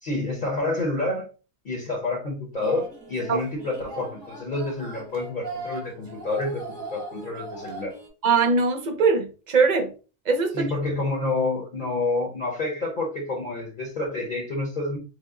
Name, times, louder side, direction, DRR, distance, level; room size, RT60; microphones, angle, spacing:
voice 1, 0.0-1.3 1.6-6.6 6.9-7.9 10.5-15.0, left 2 dB, 45° left, 0.9 m, -28 dB
sound 1, 2.5-8.1, right 3 dB, 25° right, 1.0 m, -40 dB
voice 2, 8.2-9.9 10.3-10.7, right 4 dB, 50° right, 0.6 m, -21 dB
3.5 x 2.0 x 3.6 m
omnidirectional pair, 1.2 m